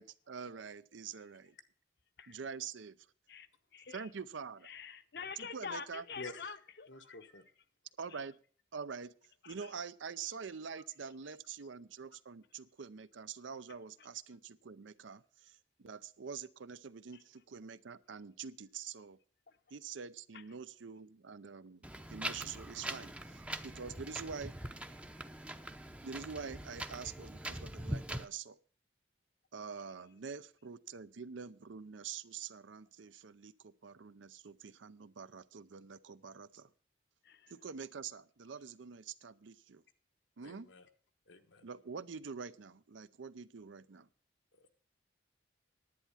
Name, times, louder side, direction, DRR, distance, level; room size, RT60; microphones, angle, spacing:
voice 1, 0.0-1.5 2.3-3.1 3.9-4.7 5.4-6.1 8.0-8.4 8.7-19.2 19.7-21.8 22.1-24.5 26.0-28.6 29.5-36.7 37.5-39.8 40.4-40.7 41.6-44.1, right 6 dB, 90° right, 15 dB, 0.6 m, -46 dB
voice 2, 4.7-7.1 9.4-9.5 37.2-37.5, left 5 dB, 55° left, 12 dB, 0.8 m, -46 dB
voice 3, 6.2-6.5 6.9-7.4 40.4-40.9 41.3-41.7 44.6-44.7, left 3 dB, 80° left, 6 dB, 1.3 m, -49 dB
Wind, 21.8-28.2, right 1 dB, 5° right, 0.6 m, -43 dB
10.5 x 9.1 x 5.7 m, 0.42 s
head